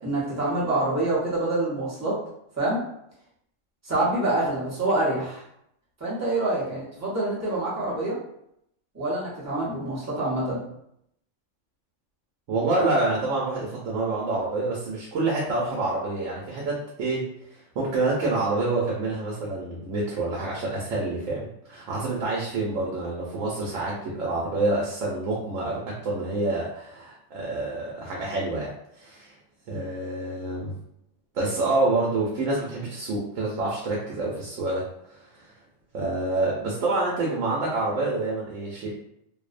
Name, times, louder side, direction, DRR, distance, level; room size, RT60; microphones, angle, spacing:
voice 1, 0.0-2.2 2.6-2.8 3.8-5.4 6.0-8.2 8.9-10.6, right 2 dB, 15° right, -7 dB, 0.6 m, -26 dB
voice 2, 12.5-17.2 17.8-29.3 29.7-30.8 31.3-35.5 35.9-39.0, right 2 dB, 80° right, -4 dB, 0.9 m, -27 dB
2.6 x 2.0 x 2.4 m, 0.77 s
omnidirectional pair, 1.3 m